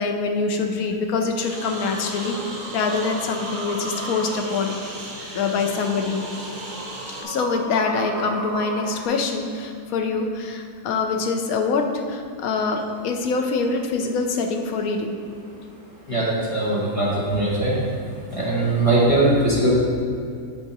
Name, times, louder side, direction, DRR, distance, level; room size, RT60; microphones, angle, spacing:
voice 1, 0.0-4.9 5.2-6.3 7.2-15.2, left 4 dB, 65° left, 4 dB, 1.1 m, -25 dB
Engine, 1.4-7.2, right 1 dB, 85° right, 1.8 m, -37 dB
sound 1, 1.5-9.1, right 2 dB, 50° right, 1.2 m, -35 dB
voice 2, 16.1-17.8 18.3-19.7, right 2 dB, 20° left, -7 dB, 1.3 m, -20 dB
8.1 x 4.8 x 4.1 m, 2.3 s
omnidirectional pair, 1.7 m